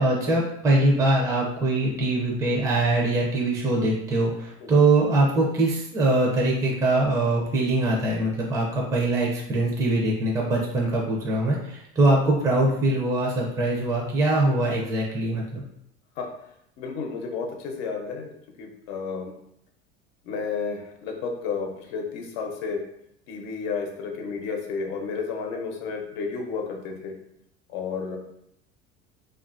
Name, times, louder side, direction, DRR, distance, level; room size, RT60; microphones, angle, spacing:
voice 1, 0.0-15.6, right 2 dB, 10° right, -3 dB, 0.4 m, -23 dB
voice 2, 16.8-18.3 18.6-19.3 20.2-22.8 23.3-27.1 27.7-28.2, left 5 dB, 85° left, 2 dB, 0.7 m, -31 dB
2.7 x 2.4 x 2.5 m, 0.75 s
cardioid pair, 135°, 29 cm